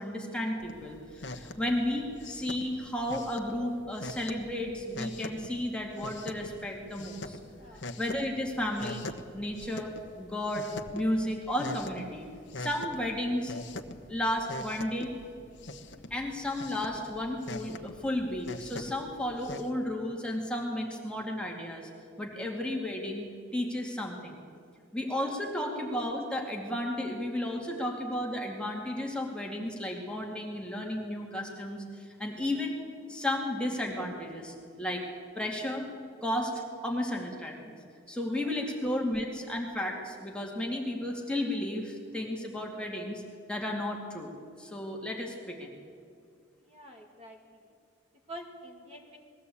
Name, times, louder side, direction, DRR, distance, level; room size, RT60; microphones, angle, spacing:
voice 1, 0.0-7.4 8.0-9.1 9.3-9.9 10.2-12.3 12.6-13.5 14.1-15.1 16.1-21.9 22.2-23.3 23.5-24.4 24.9-32.8 33.1-35.0 35.4-35.9 36.2-36.5 36.8-37.7 38.1-43.2 43.5-44.3 44.6-45.8, left 1 dB, 5° left, -1 dB, 2.3 m, -33 dB
sound 1, 0.6-19.7, left 2 dB, 65° left, 1.2 m, -43 dB
voice 2, 46.6-47.4 47.6-47.7 48.3-49.2, equal, 30° right, 2 dB, 2.2 m, -47 dB
20.5 x 15.5 x 8.6 m, 2.2 s
head